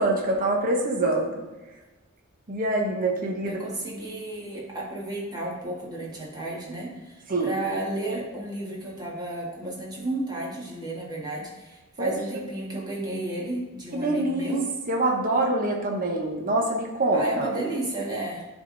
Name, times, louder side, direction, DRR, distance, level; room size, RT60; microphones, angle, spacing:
voice 1, 0.0-1.4 2.5-3.6 7.3-7.5 12.0-12.1 13.9-14.6 14.9-17.5, right 2 dB, 40° right, 0 dB, 1.0 m, -25 dB
voice 2, 3.4-14.7 17.1-18.5, right 1 dB, 20° right, -4 dB, 1.7 m, -32 dB
11.0 x 3.7 x 3.9 m, 1.2 s
head